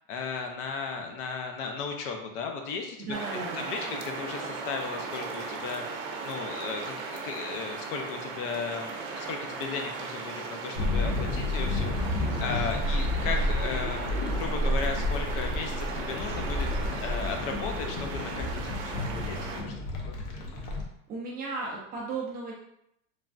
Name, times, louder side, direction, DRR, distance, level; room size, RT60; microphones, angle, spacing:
voice 1, 0.1-3.1 3.5-16.7 16.9-19.7 20.0-20.2, left 5 dB, 50° left, 3 dB, 0.4 m, -36 dB
voice 2, 3.0-3.7 21.1-22.5, right 3 dB, 25° right, -3 dB, 0.4 m, -35 dB
sound 1, 3.1-19.6, right 4 dB, 60° right, 0.7 m, -37 dB
sound 2, 10.7-20.8, left 1 dB, 70° left, 0.8 m, -30 dB
3.2 x 2.2 x 2.5 m, 0.78 s
supercardioid pair, 140°, 39 cm